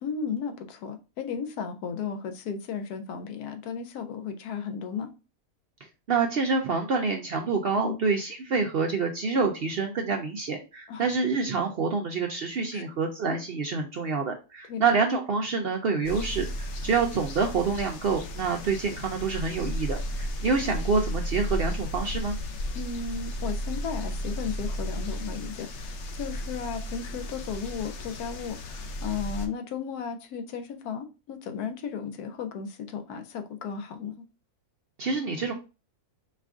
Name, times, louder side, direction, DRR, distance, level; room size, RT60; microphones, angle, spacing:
voice 1, 0.0-5.1 7.8-8.0 10.9-11.1 12.7-12.8 14.7-14.8 22.7-34.2, left 6 dB, 80° left, 1.2 m, -35 dB
voice 2, 6.1-22.4 35.0-35.5, right 4 dB, 65° right, 0.6 m, -27 dB
sound 1, 16.0-29.5, equal, 60° left, 0.8 m, -34 dB
4.4 x 2.5 x 3.5 m
omnidirectional pair, 1.6 m